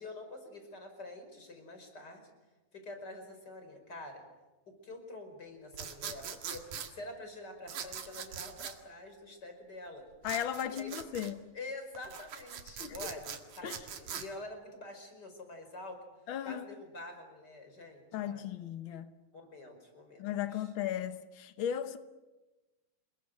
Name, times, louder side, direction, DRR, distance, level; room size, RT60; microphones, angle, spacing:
voice 1, 0.0-2.3 2.7-4.2 4.7-10.1 10.6-10.9 11.3-16.0 16.4-18.5 19.3-20.2 20.5-20.7, left 2 dB, 30° left, 5.6 m, -47 dB
sound 1, 5.7-6.9 7.7-8.8 10.2-11.3 12.0-14.3, right 8 dB, 75° right, 3.5 m, -42 dB
voice 2, 10.2-11.4 12.8-13.1 13.6-13.8 16.3-16.6 18.1-19.1 20.2-22.0, left 10 dB, 75° left, 1.1 m, -36 dB
28.5 x 21.5 x 7.8 m
omnidirectional pair, 3.7 m